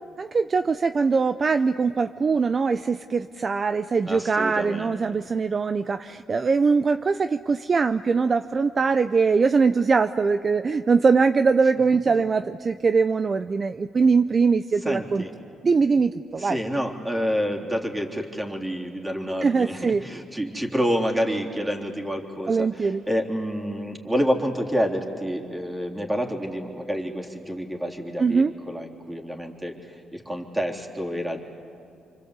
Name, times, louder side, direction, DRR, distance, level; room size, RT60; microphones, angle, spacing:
voice 1, 0.2-15.2 15.6-16.6 19.4-20.0 22.5-23.0 28.2-28.5, right 4 dB, 40° right, 10 dB, 0.6 m, -22 dB
voice 2, 4.1-5.0 14.9-15.3 16.4-31.4, equal, 10° right, 1 dB, 3.5 m, -28 dB
27.5 x 25.0 x 8.3 m, 2.6 s
cardioid pair, 90°, 0 cm